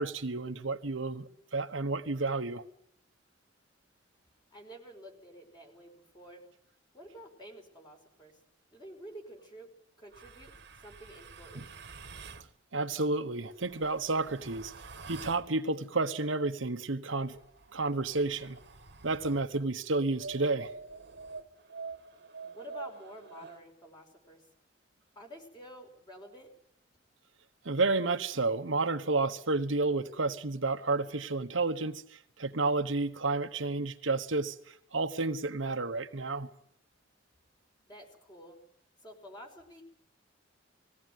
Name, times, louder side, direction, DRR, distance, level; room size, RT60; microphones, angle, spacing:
voice 1, 0.0-2.6 12.7-14.7 15.1-17.3 17.7-18.6 19.0-20.7 27.6-36.5, right 3 dB, 85° right, 1.2 m, -31 dB
voice 2, 4.5-6.5 6.9-8.4 8.7-9.7 10.0-10.5 10.8-11.7 22.5-24.5 25.2-26.5 37.8-38.6 39.0-39.8, equal, 25° left, 5.4 m, -50 dB
sound 1, 10.1-12.5 13.4-15.5 17.1-19.5 20.2-23.6, right 4 dB, 60° right, 1.5 m, -47 dB
20.5 x 16.5 x 9.4 m
head